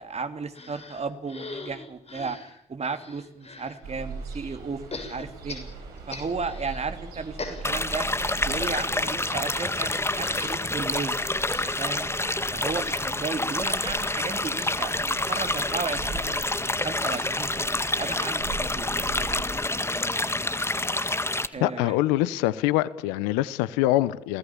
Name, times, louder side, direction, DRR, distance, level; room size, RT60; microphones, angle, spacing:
voice 1, 0.0-2.4 2.7-5.7 6.1-8.1 8.4-16.5 16.8-18.9 21.5-21.9, right 4 dB, 45° right, 2.9 m, -34 dB
sound 1, 0.5-3.8 4.9-6.9 7.2-19.1 19.5-19.6 19.8-19.9, left 3 dB, 40° left, 6.8 m, -44 dB
Ocean, 3.8-19.4, right 4 dB, 75° right, 5.8 m, -41 dB
sound 2, 7.6-21.5, left 2 dB, 15° left, 1.9 m, -28 dB
voice 2, 21.6-24.4, left 16 dB, 80° left, 0.9 m, -24 dB
29.5 x 18.5 x 7.2 m
hypercardioid pair, 40°, 16 cm